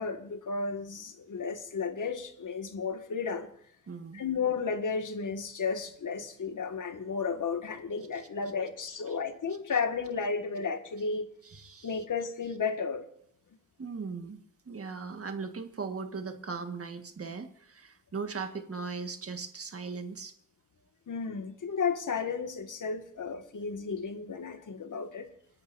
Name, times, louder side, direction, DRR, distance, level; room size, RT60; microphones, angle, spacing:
voice 1, 0.0-3.5 4.1-11.3 11.8-13.1 21.1-25.3, left 5 dB, 75° left, 6 dB, 1.9 m, -33 dB
voice 2, 3.9-4.2 9.1-9.2 11.4-12.0 13.8-20.3, right 5 dB, 45° right, 6 dB, 1.7 m, -39 dB
29.5 x 11.5 x 2.7 m, 0.68 s
wide cardioid pair, 150°, 32 cm